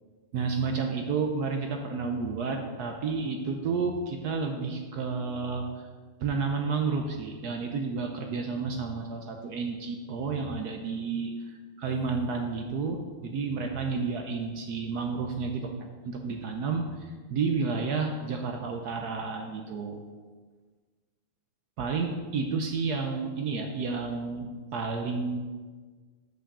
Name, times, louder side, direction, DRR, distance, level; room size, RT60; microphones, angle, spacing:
voice 1, 0.3-5.7 6.2-20.0 21.8-25.4, right 4 dB, 65° right, 3 dB, 1.0 m, -31 dB
6.2 x 5.7 x 6.7 m, 1.4 s
omnidirectional pair, 2.3 m